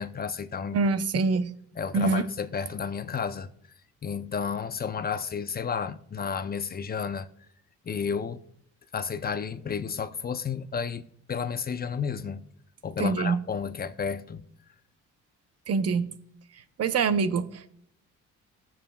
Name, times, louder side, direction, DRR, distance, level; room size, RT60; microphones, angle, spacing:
voice 1, 0.0-0.8 1.8-3.5 4.0-7.3 7.8-8.4 8.9-11.0 11.3-12.4 12.8-14.5, left 6 dB, 30° left, 0.6 m, -32 dB
voice 2, 0.7-1.5 1.9-2.3 13.0-13.4 15.7-16.1 16.8-17.7, right 4 dB, 55° right, 0.8 m, -25 dB
21.0 x 7.3 x 2.3 m
cardioid pair, 90°, 30 cm